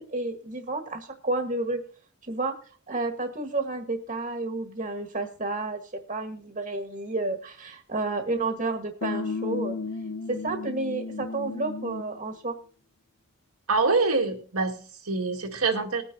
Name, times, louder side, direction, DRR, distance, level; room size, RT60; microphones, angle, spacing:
voice 1, 0.0-1.8 2.2-2.5 2.9-9.8 10.3-12.6, right 2 dB, 35° right, 5 dB, 1.5 m, -31 dB
sound 1, 9.0-12.2, left 4 dB, 80° left, 0.7 m, -33 dB
voice 2, 13.7-16.0, right 3 dB, 85° right, 3 dB, 2.0 m, -25 dB
20.0 x 9.7 x 2.7 m, 0.43 s
head